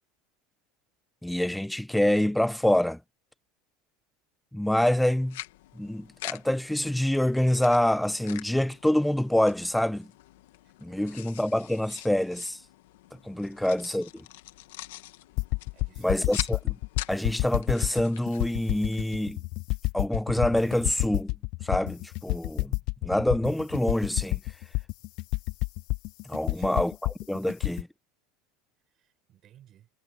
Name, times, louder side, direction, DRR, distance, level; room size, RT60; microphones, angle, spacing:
voice 1, 1.2-3.0 4.5-5.4 5.8-10.1 10.8-12.6 13.2-14.2 16.0-16.8 17.1-19.4 19.9-21.3 21.6-22.7 23.0-24.4 26.3-27.9, left 1 dB, 5° left, 0.8 m, -26 dB
sound 1, 4.9-19.2, left 17 dB, 85° left, 1.7 m, -45 dB
voice 2, 10.6-11.4 13.5-13.7 15.7-16.3 26.4-26.8 27.4-27.7 28.9-29.9, right 12 dB, 40° right, 8.0 m, -60 dB
sound 2, 15.4-27.8, left 25 dB, 55° left, 0.3 m, -29 dB
supercardioid pair, 140°, 0 cm